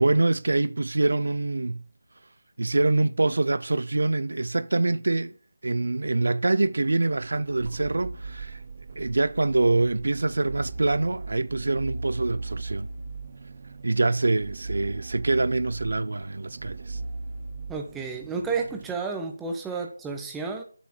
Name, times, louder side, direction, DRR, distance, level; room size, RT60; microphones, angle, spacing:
voice 1, 0.0-1.8 2.6-5.3 5.6-8.6 9.0-12.9 13.8-17.0, right 2 dB, 80° right, 0.3 m, -25 dB
sound 1, 6.8-18.9, right 3 dB, 45° right, 0.7 m, -38 dB
voice 2, 17.7-20.6, right 4 dB, 5° right, 1.0 m, -31 dB
7.2 x 7.1 x 4.4 m
figure-of-eight pair, 165°, 0 cm